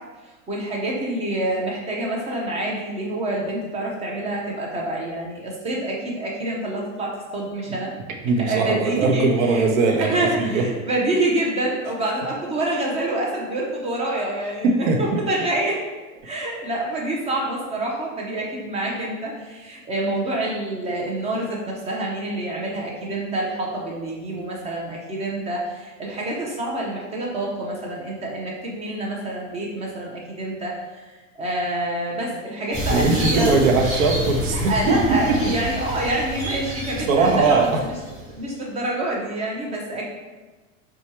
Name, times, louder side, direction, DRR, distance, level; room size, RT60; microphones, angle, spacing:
voice 1, 0.5-7.9 8.5-9.6 10.0-15.8 16.2-30.7 31.4-33.5 34.5-37.7 38.3-40.0, right 1 dB, 15° right, -2 dB, 0.6 m, -27 dB
voice 2, 8.1-10.7 14.6-15.3 32.9-35.5 37.1-37.8, right 3 dB, 75° right, 3 dB, 0.8 m, -20 dB
sound 1, 32.7-38.5, equal, 30° right, 1.3 m, -28 dB
4.2 x 2.3 x 2.9 m, 1.2 s
supercardioid pair, 130°, 40 cm